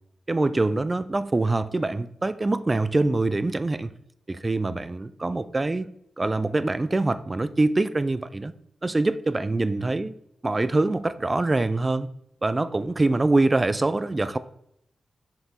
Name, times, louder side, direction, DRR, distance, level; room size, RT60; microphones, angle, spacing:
voice 1, 0.3-3.9 4.3-5.9 6.2-8.5 8.8-10.1 10.4-12.1 12.4-14.4, right 2 dB, 20° right, 0.4 m, -24 dB
7.5 x 6.9 x 4.2 m
wide cardioid pair, 175°, 0 cm